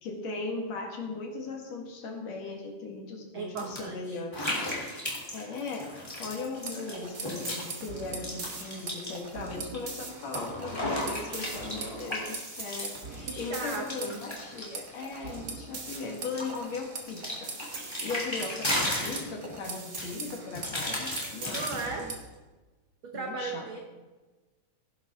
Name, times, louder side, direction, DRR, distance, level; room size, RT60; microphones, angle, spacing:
voice 1, 0.0-4.5 5.3-21.7 23.1-23.7, left 3 dB, 60° left, 1 dB, 2.8 m, -38 dB
voice 2, 3.3-4.2 13.2-14.2 21.5-22.1 23.0-23.8, right 4 dB, 70° right, 3 dB, 1.2 m, -36 dB
sound 1, 3.6-3.8 4.3-7.7 8.0-9.8 10.1-15.5 15.9-19.6 20.0-22.0, left 1 dB, 10° left, 3.1 m, -35 dB
sound 2, 6.5-22.2, right 3 dB, 40° right, 1.3 m, -42 dB
17.0 x 11.0 x 3.7 m, 1.3 s
omnidirectional pair, 3.7 m